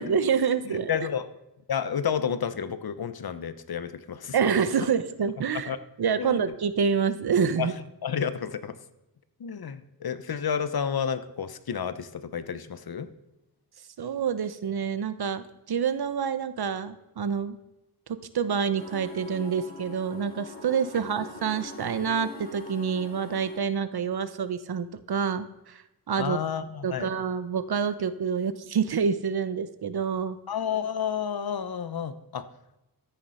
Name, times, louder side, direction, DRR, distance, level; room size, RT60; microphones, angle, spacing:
voice 1, 0.0-0.9 4.3-5.7 6.0-7.7 14.0-17.6 18.1-26.4 26.8-30.4, right 6 dB, 70° right, 13 dB, 1.0 m, -27 dB
voice 2, 0.6-1.4 1.7-4.4 5.7-5.8 6.2-6.5 7.6-7.7 8.0-8.8 9.4-13.1 20.9-21.0 26.2-27.1 30.5-32.5, left 7 dB, 65° left, 12 dB, 1.0 m, -31 dB
sound 1, 18.7-23.6, left 2 dB, 25° left, 3.5 m, -43 dB
13.5 x 9.3 x 5.7 m, 0.96 s
wide cardioid pair, 90°, 39 cm